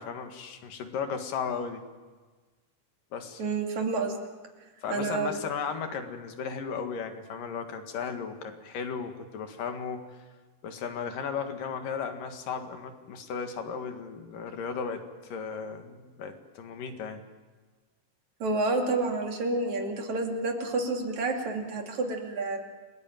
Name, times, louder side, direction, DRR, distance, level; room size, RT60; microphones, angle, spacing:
voice 1, 0.0-1.8 3.1-3.4 4.8-10.0 10.6-15.0 15.3-17.2, left 6 dB, 85° left, 6 dB, 3.5 m, -35 dB
voice 2, 3.4-4.2 4.9-5.4 18.4-22.6, right 3 dB, 60° right, 2 dB, 3.9 m, -29 dB
29.0 x 19.5 x 9.1 m, 1.4 s
omnidirectional pair, 3.7 m